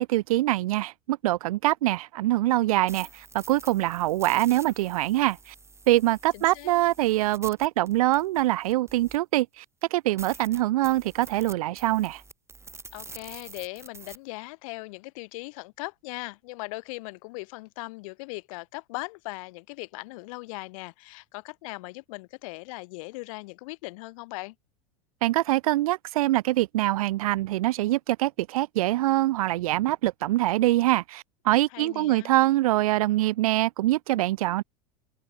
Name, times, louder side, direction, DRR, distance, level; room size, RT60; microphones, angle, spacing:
voice 1, 0.0-5.5 5.9-9.6 9.9-12.2 25.2-34.6, right 16 dB, 80° right, 0.4 m, -24 dB
sound 1, 2.6-9.4 9.8-9.9 10.2-14.2, right 3 dB, 15° right, 2.6 m, -47 dB
voice 2, 6.3-6.7 12.9-24.5 31.7-32.3, left 24 dB, 65° left, 3.2 m, -39 dB
open air
hypercardioid pair, 90°, 18 cm